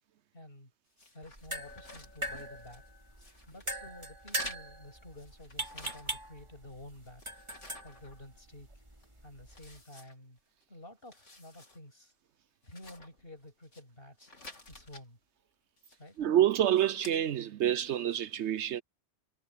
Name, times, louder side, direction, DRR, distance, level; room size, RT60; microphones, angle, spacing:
voice 1, 0.3-0.7 1.1-2.8 3.5-7.2 7.8-8.8 9.2-10.4 10.7-12.1 12.6-14.3 14.7-15.2 16.0-16.2, left 1 dB, 50° left, 8.0 m, -51 dB
sound 1, 1.0-2.9 3.2-3.7 4.2-6.4 6.7-8.6 9.0-9.1 9.5-10.6 11.0-11.8 12.1-12.2 12.6-13.8 14.2-15.1 15.8-16.2 16.6-17.2, left 2 dB, 80° left, 4.3 m, -51 dB
sound 2, 1.2-9.8, right 1 dB, 25° right, 3.5 m, -41 dB
voice 2, 16.2-18.8, right 11 dB, 70° right, 0.9 m, -27 dB
omnidirectional pair, 1.2 m